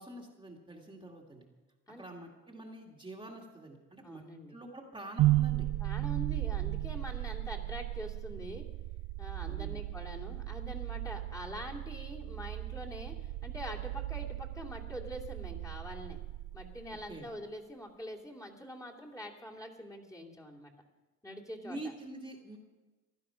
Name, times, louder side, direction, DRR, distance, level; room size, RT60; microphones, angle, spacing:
voice 1, 0.0-1.5 2.0-4.2 4.5-5.7 9.4-9.8 17.1-17.3 21.6-22.6, right 1 dB, 15° right, 0 dB, 2.1 m, -46 dB
voice 2, 4.0-4.6 5.8-8.7 9.2-16.2 16.5-20.7 21.2-21.8, equal, 10° left, -3 dB, 2.6 m, -44 dB
sound 1, 5.2-17.2, right 16 dB, 80° right, 0.4 m, -35 dB
15.5 x 11.5 x 5.7 m, 1.2 s
cardioid pair, 90°, 30 cm